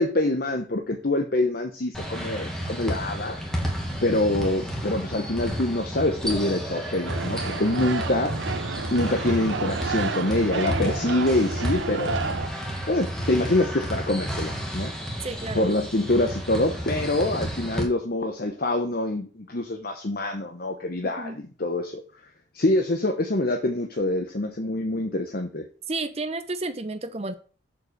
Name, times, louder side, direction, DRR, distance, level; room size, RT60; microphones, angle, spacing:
voice 1, 0.0-3.4 4.0-8.3 8.9-12.2 12.9-14.9 15.5-22.0 22.5-25.6, left 1 dB, 50° left, 4 dB, 0.9 m, -25 dB
sound 1, 1.9-17.8, equal, 5° left, 1.8 m, -32 dB
sound 2, 7.1-12.5, right 4 dB, 70° right, 0.7 m, -31 dB
voice 2, 15.2-15.7 21.0-21.4 25.9-27.3, right 2 dB, 30° right, 11 dB, 0.8 m, -31 dB
7.7 x 5.0 x 6.5 m, 0.40 s
head